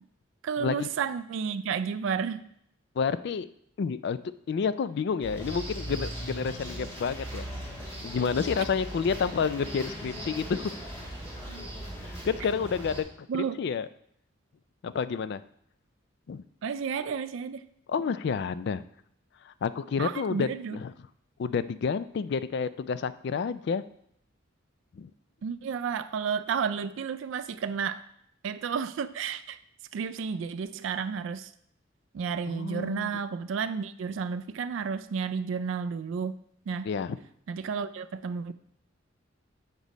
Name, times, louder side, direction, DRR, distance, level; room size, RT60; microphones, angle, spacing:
voice 1, 0.4-2.5 13.3-13.6 16.6-17.7 20.0-20.8 25.4-28.0 28.4-29.6 29.9-31.5 32.1-36.4 36.7-36.9 37.5-38.5, right 6 dB, 70° right, 12 dB, 0.3 m, -32 dB
voice 2, 3.0-3.5 3.8-4.2 4.5-7.5 8.0-10.7 12.2-13.3 13.6-13.9 14.8-15.4 16.3-16.4 17.9-18.8 19.5-20.9 21.4-23.8 24.9-25.1 32.5-33.1 36.8-37.2, left 6 dB, 55° left, 14 dB, 0.3 m, -29 dB
sound 1, 5.2-13.0, right 1 dB, 10° left, 2.2 m, -39 dB
8.2 x 4.0 x 5.1 m, 0.70 s
head